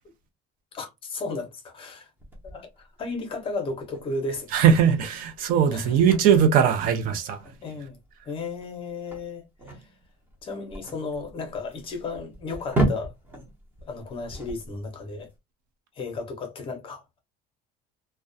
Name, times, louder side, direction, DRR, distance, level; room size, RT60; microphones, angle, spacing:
voice 1, 0.7-2.1 2.4-4.5 5.7-6.0 7.6-8.0 8.2-9.4 9.7-9.8 10.4-13.1 13.8-15.3 16.0-17.2, left 3 dB, 30° left, 0.6 m, -34 dB
sound 1, 2.2-15.3, right 1 dB, 10° right, 0.7 m, -35 dB
voice 2, 4.5-7.4, right 8 dB, 50° right, 0.4 m, -20 dB
2.3 x 2.1 x 2.5 m
cardioid pair, 175°, 19 cm